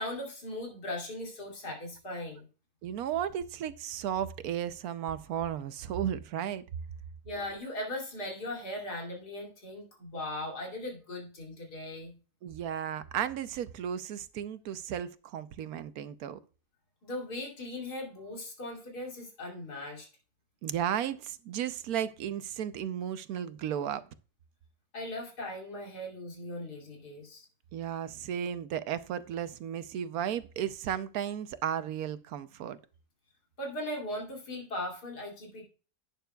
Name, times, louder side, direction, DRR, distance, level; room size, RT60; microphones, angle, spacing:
voice 1, 0.0-2.5 7.2-12.1 17.0-20.1 24.9-27.4 33.6-35.6, left 1 dB, 85° left, 3.3 m, -38 dB
voice 2, 2.8-6.6 12.4-16.4 20.6-24.0 27.7-32.8, right 9 dB, 70° right, 1.1 m, -34 dB
11.5 x 9.1 x 2.3 m
omnidirectional pair, 1.7 m